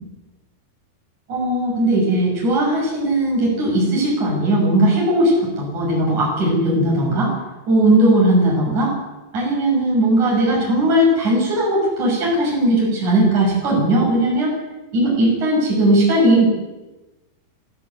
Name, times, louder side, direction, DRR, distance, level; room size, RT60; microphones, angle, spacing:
voice 1, 1.3-7.4 7.7-8.9 9.3-14.5 14.9-16.5, right 1 dB, 45° right, -3 dB, 8.0 m, -18 dB
26.0 x 15.0 x 8.3 m, 1.1 s
omnidirectional pair, 4.6 m